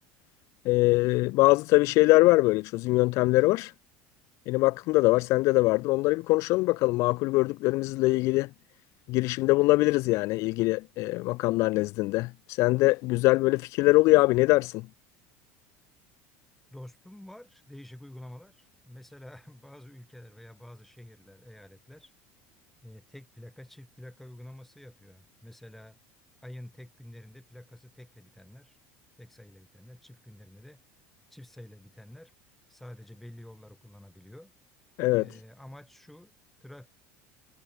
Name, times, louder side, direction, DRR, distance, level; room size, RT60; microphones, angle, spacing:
voice 1, 0.7-3.7 4.5-8.5 9.1-14.8 35.0-35.3, left 22 dB, 60° left, 0.3 m, -23 dB
voice 2, 16.7-22.1 22.8-26.0 26.4-28.8 29.2-30.8 31.3-32.3 32.7-34.5 35.1-36.3 36.6-36.9, left 1 dB, 5° left, 4.7 m, -48 dB
supercardioid pair, 125°, 6 cm